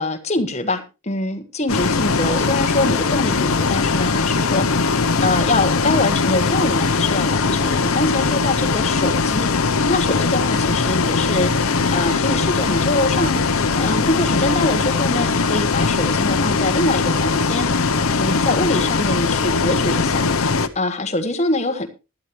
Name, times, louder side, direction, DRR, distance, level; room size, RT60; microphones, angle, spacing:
voice 1, 0.0-20.3 20.7-21.9, left 2 dB, 30° left, 7 dB, 1.5 m, -24 dB
Bus, 1.7-20.7, left 4 dB, 75° left, 0.8 m, -20 dB
16.0 x 11.5 x 3.2 m, 0.29 s
head